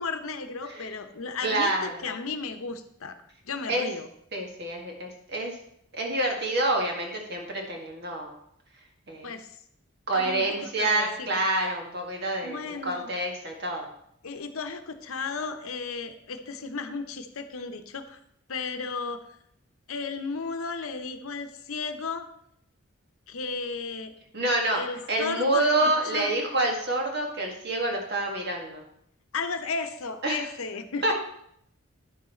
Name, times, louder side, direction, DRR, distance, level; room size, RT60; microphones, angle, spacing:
voice 1, 0.0-3.2 3.4-4.1 9.2-9.6 10.1-11.5 12.4-13.1 14.2-18.2 18.5-19.2 19.9-22.3 23.3-24.1 24.7-26.3 29.3-31.1, left 4 dB, 75° left, 8 dB, 0.8 m, -34 dB
voice 2, 1.4-2.1 3.7-3.9 4.3-5.6 5.9-8.4 9.1-9.3 10.1-13.9 24.3-24.8 25.1-28.8 30.2-30.4 31.0-31.1, right 2 dB, 50° right, 1 dB, 1.8 m, -27 dB
10.0 x 6.3 x 4.3 m, 0.71 s
head